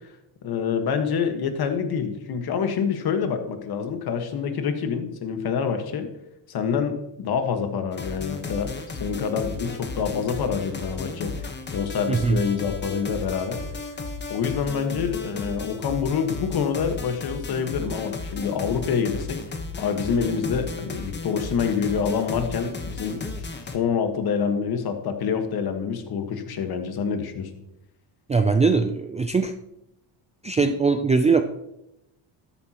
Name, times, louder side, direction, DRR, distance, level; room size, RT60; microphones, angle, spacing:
voice 1, 0.4-6.1 6.5-8.7 9.0-11.3 11.7-13.6 14.3-23.3 23.7-27.5, left 6 dB, 50° left, 6 dB, 1.5 m, -26 dB
sound 1, 7.9-23.8, left 3 dB, 25° left, 1.1 m, -34 dB
voice 2, 12.1-12.4 28.3-29.5 30.4-31.4, right 4 dB, 15° right, 7 dB, 0.3 m, -21 dB
13.0 x 10.0 x 3.0 m, 0.86 s
cardioid pair, 135°, 46 cm